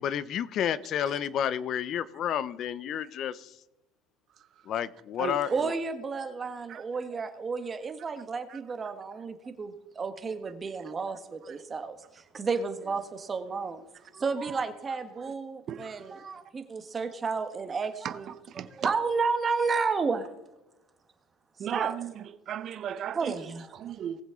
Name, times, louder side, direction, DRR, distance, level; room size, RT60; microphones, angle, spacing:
voice 1, 0.0-3.6 4.6-5.7, left 9 dB, 45° left, 0.7 m, -31 dB
voice 2, 5.5-13.8 14.1-20.3 21.7-22.0 23.1-23.7 24.0-24.1, right 4 dB, 25° right, 1.3 m, -32 dB
voice 3, 21.6-23.3 23.7-24.2, right 10 dB, 45° right, 0.8 m, -35 dB
19.5 x 7.4 x 3.7 m
cardioid pair, 135°, 0 cm